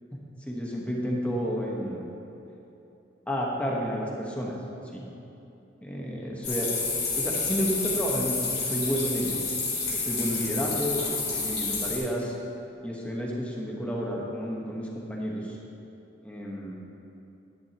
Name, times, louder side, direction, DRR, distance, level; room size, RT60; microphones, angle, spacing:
voice 1, 0.5-2.0 3.3-4.6 4.9-5.1 5.8-6.7 7.1-9.4 9.9-12.3 12.8-15.6 16.2-16.7, equal, 5° left, -3 dB, 1.1 m, -31 dB
sound 1, 6.4-12.0, left 4 dB, 35° left, 2.2 m, -29 dB
12.0 x 10.5 x 2.9 m, 2.9 s
head